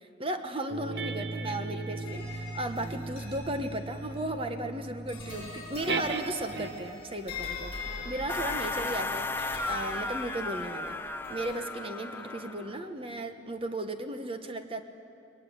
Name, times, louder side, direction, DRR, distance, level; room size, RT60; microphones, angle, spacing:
voice 1, 0.2-7.7 8.0-11.0 11.3-14.8, right 1 dB, 30° right, 7 dB, 1.2 m, -35 dB
sound 1, 0.7-7.1 7.8-12.8, right 3 dB, 70° right, 1.1 m, -40 dB
sound 2, 2.0-13.0, left 3 dB, 30° left, 7.3 m, -43 dB
sound 3, 8.3-12.8, left 3 dB, 10° left, 0.6 m, -35 dB
22.0 x 20.0 x 9.4 m, 2.5 s
head